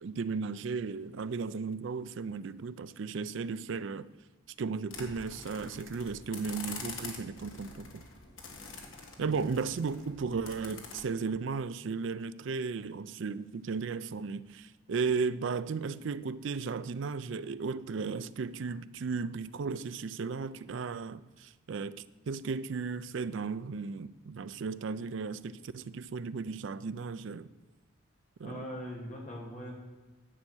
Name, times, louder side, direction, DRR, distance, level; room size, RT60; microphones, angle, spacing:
voice 1, 0.0-4.1 4.6-8.0 9.2-27.5 28.4-28.7, right 5 dB, 65° right, 0.4 m, -35 dB
sound 1, 4.9-11.0, left 4 dB, 75° left, 1.8 m, -46 dB
voice 2, 28.4-29.7, equal, 35° left, 2.4 m, -41 dB
10.0 x 7.7 x 6.2 m
head